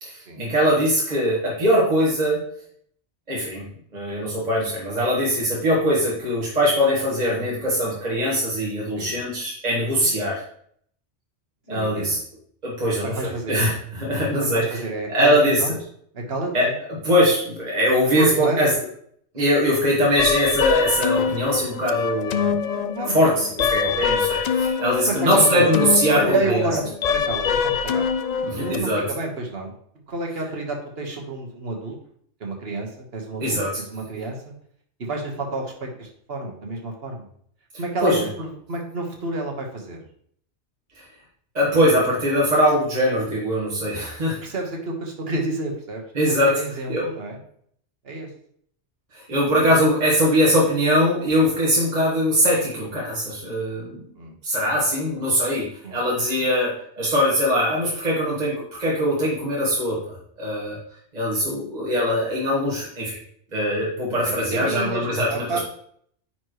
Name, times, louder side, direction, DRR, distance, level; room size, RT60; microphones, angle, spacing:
voice 1, 0.0-2.4 3.3-3.6 3.9-10.4 11.7-12.2 12.6-14.8 15.1-15.6 16.5-16.7 17.0-18.7 19.3-22.6 23.1-26.3 28.4-29.0 33.4-33.7 38.0-38.2 41.5-44.4 46.1-46.5 46.9-47.1 49.3-54.0 54.4-58.5 58.8-60.0 60.4-60.8 61.1-63.2 63.5-65.6, equal, 40° right, -5 dB, 1.6 m, -21 dB
voice 2, 11.7-12.2 13.0-13.6 14.1-15.7 16.1-16.7 18.1-18.7 22.3-22.5 22.9-23.3 23.8-24.0 25.1-28.1 28.5-29.7 30.1-32.0 32.4-34.5 35.0-37.3 37.8-40.0 44.4-46.0 46.3-47.4 48.0-48.3 49.7-49.8 54.1-54.3 55.8-56.0 64.3-65.6, right 2 dB, 60° right, 1 dB, 1.6 m, -29 dB
sound 1, 20.2-28.8, left 6 dB, 60° left, 0.4 m, -24 dB
9.7 x 4.4 x 3.1 m, 0.64 s
omnidirectional pair, 1.2 m